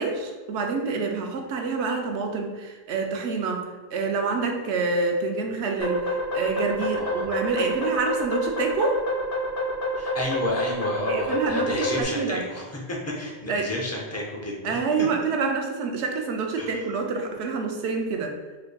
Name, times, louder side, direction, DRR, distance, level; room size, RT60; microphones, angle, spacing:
voice 1, 0.0-9.0 11.1-12.4 13.5-13.7 14.6-18.3, right 4 dB, 85° right, 3 dB, 0.9 m, -27 dB
sound 1, 5.8-12.0, equal, 60° left, 0.9 m, -28 dB
voice 2, 6.8-7.3 9.9-15.1 16.6-16.8, left 1 dB, 20° left, -3 dB, 0.5 m, -31 dB
4.0 x 3.3 x 2.2 m, 1.4 s
omnidirectional pair, 1.1 m